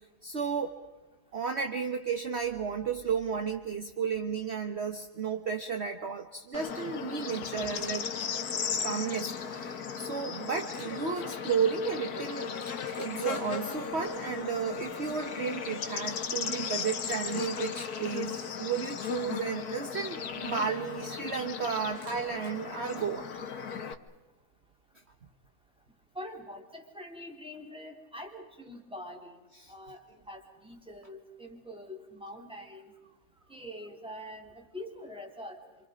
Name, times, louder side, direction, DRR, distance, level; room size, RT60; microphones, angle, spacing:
voice 1, 0.2-0.8 1.3-8.1 8.8-12.5 13.0-23.3 29.6-29.7, right 6 dB, 45° right, 7 dB, 1.4 m, -33 dB
Bird / Insect, 6.5-23.9, left 6 dB, 70° left, 1.7 m, -36 dB
Camera, 7.7-7.9 8.2-8.3 10.6-11.2 12.1-12.2 12.5-13.8 16.9-17.8 21.9-22.5, equal, 85° right, 6.8 m, -52 dB
voice 2, 26.2-29.4 29.7-32.9 33.5-35.6, left 1 dB, 5° right, 1 dB, 3.5 m, -44 dB
27.0 x 27.0 x 5.1 m, 1.2 s
omnidirectional pair, 1.7 m